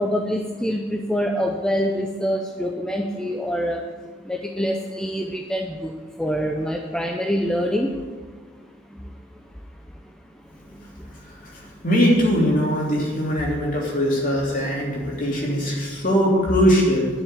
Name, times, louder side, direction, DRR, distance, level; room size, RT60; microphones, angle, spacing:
voice 1, 0.0-3.8 4.2-7.9 8.9-9.0 10.6-10.8, equal, 5° left, 1 dB, 0.6 m, -25 dB
voice 2, 11.4-17.1, equal, 40° left, -3 dB, 3.3 m, -21 dB
10.0 x 6.9 x 9.1 m, 1.4 s
head